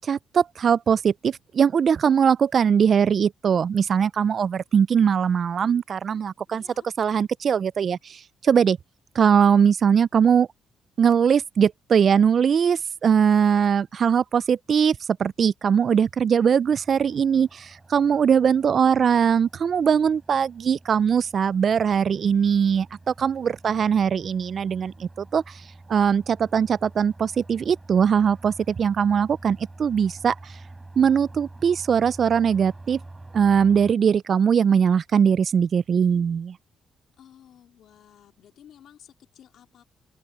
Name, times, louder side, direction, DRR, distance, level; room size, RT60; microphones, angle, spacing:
voice 1, 0.0-6.6 7.0-8.8 9.2-10.5 11.0-25.4 25.9-30.3 31.0-33.0 33.3-36.6, right 7 dB, 50° right, 0.3 m, -21 dB
voice 2, 6.5-6.9 37.2-39.8, left 10 dB, 70° left, 3.7 m, -53 dB
sound 1, 16.6-34.0, right 2 dB, 15° right, 3.9 m, -46 dB
cardioid pair, 90°, 0 cm